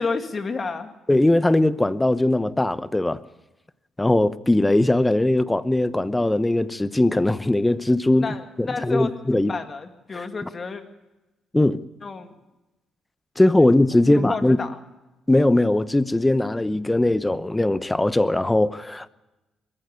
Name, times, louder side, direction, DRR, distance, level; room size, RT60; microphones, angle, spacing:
voice 1, 0.0-0.9 8.2-10.8 12.0-12.3 14.1-14.8, left 4 dB, 35° left, 2.2 m, -30 dB
voice 2, 1.1-3.2 4.0-8.3 8.6-9.5 10.2-10.3 11.5-11.8 13.4-14.6 15.3-19.1, left 1 dB, 10° left, 0.8 m, -20 dB
22.0 x 14.5 x 8.2 m
cardioid pair, 90°, 0 cm